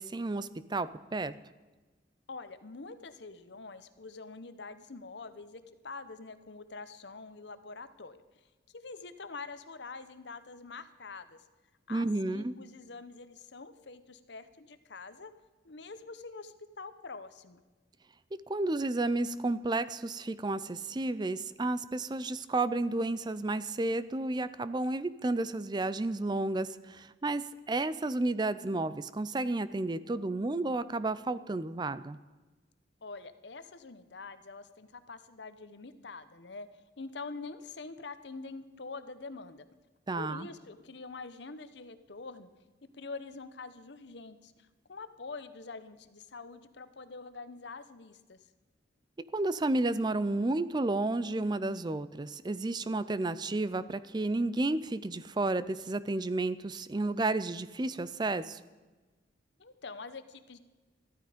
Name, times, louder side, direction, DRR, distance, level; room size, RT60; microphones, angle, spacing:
voice 1, 0.0-1.3 11.9-12.5 18.5-32.2 40.1-40.5 49.3-58.6, right 2 dB, 25° right, 15 dB, 0.4 m, -32 dB
voice 2, 2.3-8.2 8.7-11.4 11.9-15.3 15.6-17.6 33.0-36.7 37.0-39.7 40.1-42.5 42.9-48.4 59.6-60.6, left 4 dB, 70° left, 12 dB, 0.9 m, -45 dB
14.0 x 13.0 x 5.1 m, 1.3 s
head